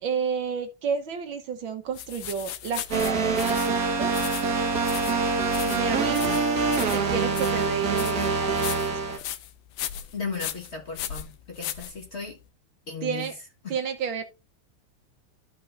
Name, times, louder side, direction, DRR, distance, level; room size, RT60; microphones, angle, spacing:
voice 1, 0.0-4.1 5.6-6.4 6.9-9.2 13.0-13.3 13.7-14.2, right 7 dB, 65° right, 1.7 m, -31 dB
sound 1, 1.9-12.4, left 11 dB, 70° left, 1.3 m, -37 dB
sound 2, 2.9-9.2, right 4 dB, 50° right, 1.5 m, -25 dB
voice 2, 6.2-6.9 10.1-12.4 12.9-13.3 13.6-13.7, left 5 dB, 35° left, 1.5 m, -36 dB
13.5 x 5.3 x 2.5 m
omnidirectional pair, 2.4 m